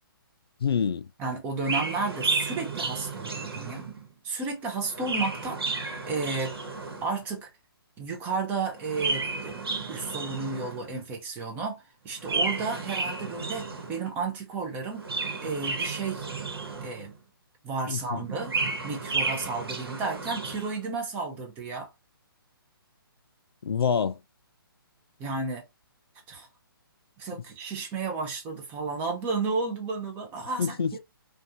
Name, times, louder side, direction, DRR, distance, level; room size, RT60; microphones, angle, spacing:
voice 1, 0.6-1.1 17.9-18.2 23.6-24.2 30.6-31.0, left 7 dB, 90° left, 0.4 m, -26 dB
voice 2, 1.2-3.9 4.2-5.6 6.1-6.6 7.0-7.5 8.0-9.6 9.9-15.1 15.4-16.3 16.8-17.1 17.6-18.5 18.8-21.9 25.2-25.6 26.3-26.5 27.2-31.0, right 4 dB, 15° right, 0.5 m, -32 dB
Chirp tweet, 1.6-4.1 4.8-7.2 8.7-10.9 12.2-14.1 14.9-17.1 18.2-20.7, right 4 dB, 85° right, 1.1 m, -32 dB
2.5 x 2.3 x 2.6 m
hypercardioid pair, 160°, 12 cm